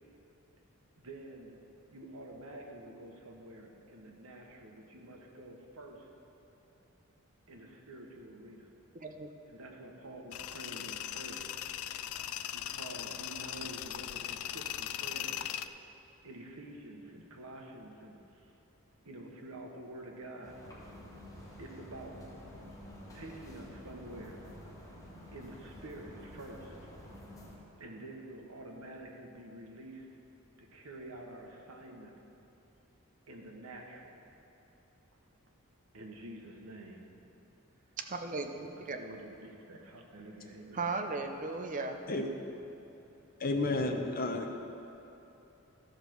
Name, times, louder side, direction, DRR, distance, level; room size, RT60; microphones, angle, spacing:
voice 1, 1.0-1.7 1.9-6.1 7.5-8.7 9.4-11.6 12.5-15.4 16.2-18.5 19.0-20.8 21.6-22.3 23.1-24.4 25.3-26.8 27.8-30.1 30.6-32.1 33.3-34.2 35.9-37.0 38.7-40.9, right 1 dB, 85° right, 1 dB, 1.2 m, -48 dB
voice 2, 8.9-9.3 38.1-39.0 40.7-42.0, right 3 dB, 35° right, 5 dB, 0.6 m, -36 dB
Tools, 10.3-15.7, left 11 dB, 75° left, 0.3 m, -39 dB
sound 1, 20.4-27.6, left 1 dB, 15° left, 1.4 m, -50 dB
voice 3, 43.4-44.6, left 2 dB, 40° left, 3 dB, 0.8 m, -31 dB
12.5 x 5.2 x 6.2 m, 3.0 s
head